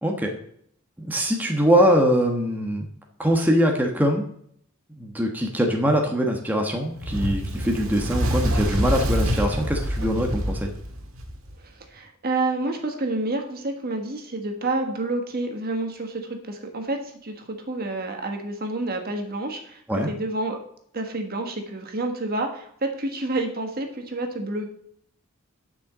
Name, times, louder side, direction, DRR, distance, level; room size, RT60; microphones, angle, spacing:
voice 1, 0.0-0.3 1.0-2.9 3.2-4.2 5.0-10.7 19.9-20.1, equal, 10° right, 1 dB, 1.2 m, -22 dB
Fire, 7.0-11.5, equal, 70° right, 1.7 m, -26 dB
voice 2, 11.6-19.8 20.1-20.6 20.9-24.7, right 2 dB, 45° right, 4 dB, 1.4 m, -29 dB
7.8 x 6.3 x 7.4 m, 0.66 s
head